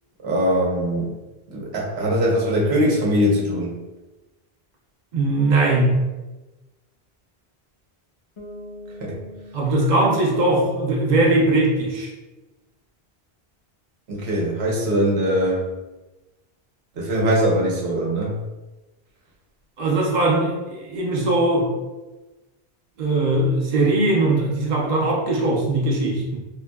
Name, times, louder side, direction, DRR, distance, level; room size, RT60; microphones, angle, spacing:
voice 1, 0.2-1.2 1.5-3.7 9.0-9.2 14.1-15.7 17.0-18.4, equal, 85° right, -3 dB, 1.0 m, -21 dB
voice 2, 5.1-6.0 9.5-12.1 19.8-21.7 23.0-26.4, right 2 dB, 50° right, -2 dB, 0.7 m, -20 dB
Bass guitar, 8.4-12.1, left 1 dB, 40° left, 0.4 m, -44 dB
3.6 x 2.6 x 2.2 m, 1.1 s
omnidirectional pair, 1.1 m